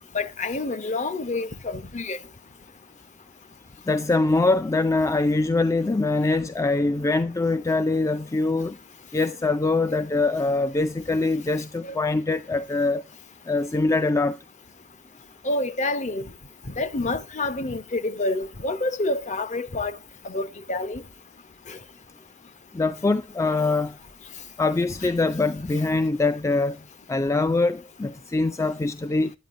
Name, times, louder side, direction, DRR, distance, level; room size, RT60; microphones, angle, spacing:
voice 1, 0.1-2.2 11.8-12.0 15.4-16.2 16.8-20.0 20.2-21.0 21.7-21.8, left 2 dB, 35° left, 0.8 m, -28 dB
voice 2, 3.9-8.8 9.1-13.0 13.5-14.4 22.7-23.9 24.6-26.8 27.1-29.3, left 3 dB, 15° left, 0.3 m, -23 dB
9.3 x 9.2 x 2.5 m
head